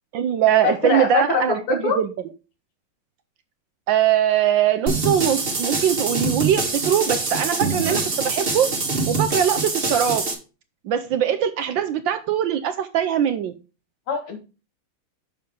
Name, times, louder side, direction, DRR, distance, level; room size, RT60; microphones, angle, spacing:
voice 1, 0.1-2.1 3.9-8.7 9.1-10.3 10.8-13.5, right 9 dB, 70° right, 9 dB, 1.2 m, -21 dB
voice 2, 0.6-1.4 1.7-2.0 14.1-14.4, left 4 dB, 85° left, 4 dB, 2.5 m, -23 dB
sound 1, 4.9-10.3, right 3 dB, 30° right, 1.4 m, -24 dB
6.7 x 6.7 x 3.5 m, 0.32 s
omnidirectional pair, 2.4 m